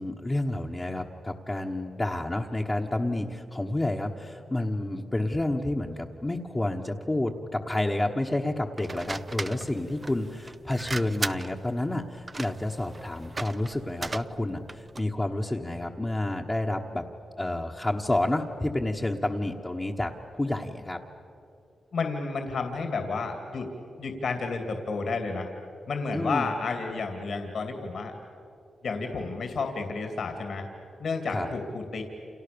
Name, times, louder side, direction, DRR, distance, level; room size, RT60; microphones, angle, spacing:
voice 1, 0.0-17.0 17.4-21.0 26.1-26.5 31.3-31.5, left 1 dB, 15° left, -2 dB, 1.3 m, -29 dB
sound 1, 8.8-15.1, right 3 dB, 25° right, 0.6 m, -38 dB
voice 2, 21.9-23.7 24.0-25.5 25.9-28.1 28.8-30.7 31.0-32.0, left 4 dB, 65° left, 5 dB, 2.8 m, -31 dB
29.5 x 28.5 x 7.0 m, 2.7 s
wide cardioid pair, 130°, 0 cm